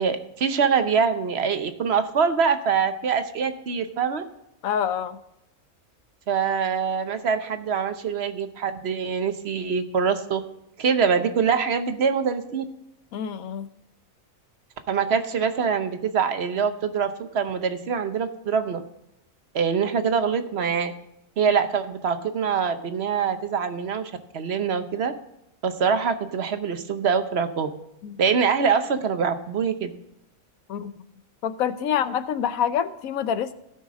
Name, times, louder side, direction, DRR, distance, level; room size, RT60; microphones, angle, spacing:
voice 1, 0.0-4.2 6.3-10.4 10.8-12.6 14.9-18.8 19.5-20.9 21.4-25.1 25.6-27.7 28.2-29.9, right 6 dB, 55° right, 9 dB, 1.0 m, -24 dB
voice 2, 4.6-5.2 13.1-13.7 28.0-28.2 30.7-30.9 31.4-33.5, left 8 dB, 85° left, 12 dB, 1.2 m, -26 dB
16.5 x 5.7 x 3.7 m, 0.86 s
omnidirectional pair, 1.4 m